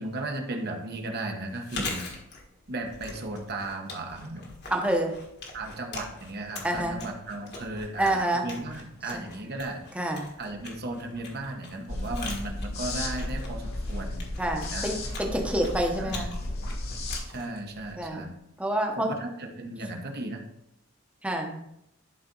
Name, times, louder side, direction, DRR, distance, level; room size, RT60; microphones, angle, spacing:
voice 1, 0.0-2.1 2.7-4.5 5.5-9.9 10.4-14.3 14.7-14.9 16.0-16.3 17.3-18.4 19.0-20.4, right 2 dB, 50° right, 3 dB, 1.2 m, -35 dB
Chewing mastication, 1.5-18.4, left 3 dB, 50° left, 1.6 m, -43 dB
voice 2, 4.7-5.2 6.6-7.0 8.0-8.5 9.1-9.2 9.9-10.3 14.4-16.3 18.0-18.3 18.6-19.1 21.2-21.6, right 1 dB, 5° right, 2 dB, 1.0 m, -27 dB
sound 1, 11.9-17.2, left 1 dB, 75° left, 1.6 m, -34 dB
11.0 x 4.3 x 3.9 m, 0.81 s
head